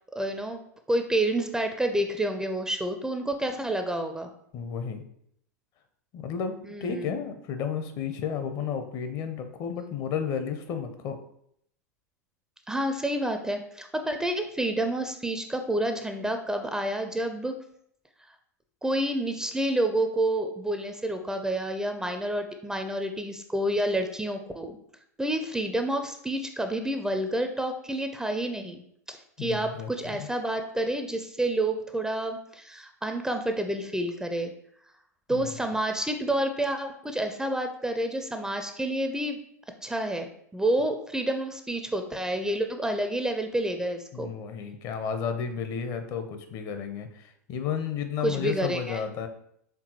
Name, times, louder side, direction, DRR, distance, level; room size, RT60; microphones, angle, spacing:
voice 1, 0.2-0.6 0.9-4.3 6.6-7.2 12.7-17.6 18.8-24.8 25.2-28.8 29.1-34.5 35.3-39.4 39.8-44.3 48.2-49.0, right 1 dB, 5° right, 6 dB, 0.4 m, -29 dB
voice 2, 4.5-5.0 6.1-11.2 29.4-30.3 35.3-35.4 44.1-49.3, left 7 dB, 45° left, 7 dB, 0.6 m, -32 dB
4.4 x 3.6 x 2.8 m, 0.70 s
figure-of-eight pair, 90°, 9 cm